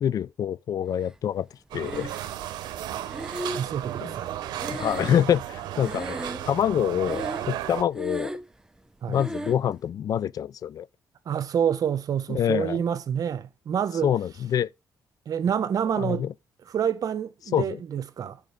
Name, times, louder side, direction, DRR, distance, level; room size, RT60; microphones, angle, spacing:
voice 1, 0.0-1.5 1.7-2.1 4.0-4.1 4.7-8.4 9.1-10.9 12.3-12.8 14.0-14.7 16.0-16.3 17.5-17.6, left 9 dB, 60° left, 0.3 m, -26 dB
sound 1, 1.7-7.8, right 12 dB, 85° right, 0.7 m, -34 dB
Breathing, 1.8-2.5 3.1-5.6 5.8-6.6 7.0-7.6 7.9-8.6 9.2-9.6, right 1 dB, 10° right, 0.6 m, -36 dB
voice 2, 3.5-4.4 9.0-9.2 11.3-14.1 15.3-16.3 16.7-18.4, right 8 dB, 60° right, 0.8 m, -27 dB
5.3 x 5.0 x 6.2 m
cardioid pair, 85°, 7 cm